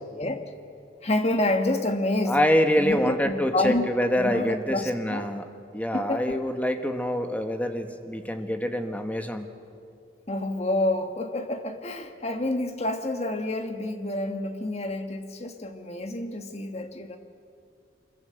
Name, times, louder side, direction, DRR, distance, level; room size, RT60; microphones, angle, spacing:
voice 1, 1.0-2.4 2.8-3.9 4.2-5.3 5.9-6.4 10.3-17.2, left 1 dB, 35° left, 7 dB, 1.5 m, -28 dB
voice 2, 2.3-5.5 5.7-9.5, equal, 10° left, 6 dB, 1.3 m, -25 dB
25.0 x 22.0 x 7.9 m, 2.4 s
head